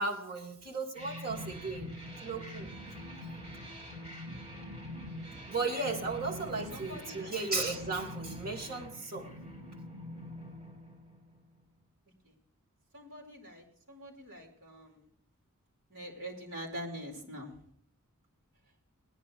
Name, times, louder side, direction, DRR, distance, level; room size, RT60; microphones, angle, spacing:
voice 1, 0.0-2.7 5.5-9.3, right 3 dB, 45° right, 1 dB, 3.2 m, -35 dB
sound 1, 0.9-11.5, left 1 dB, 30° right, 5.3 m, -44 dB
voice 2, 6.7-7.4 12.2-12.3 12.9-15.0 15.9-17.6, equal, 60° right, -1 dB, 4.7 m, -44 dB
20.0 x 10.5 x 3.5 m, 0.65 s
head